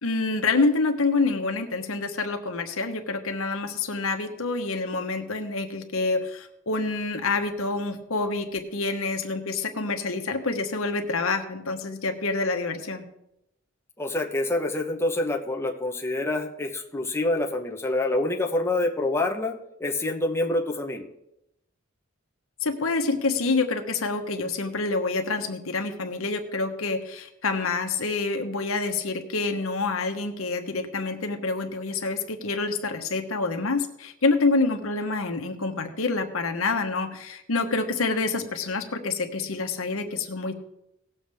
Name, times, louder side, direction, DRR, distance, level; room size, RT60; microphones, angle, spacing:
voice 1, 0.0-13.0 22.6-40.5, left 3 dB, 85° left, 5 dB, 1.2 m, -27 dB
voice 2, 14.0-21.1, left 2 dB, 15° left, 1 dB, 1.0 m, -27 dB
18.5 x 7.2 x 3.5 m, 0.85 s
head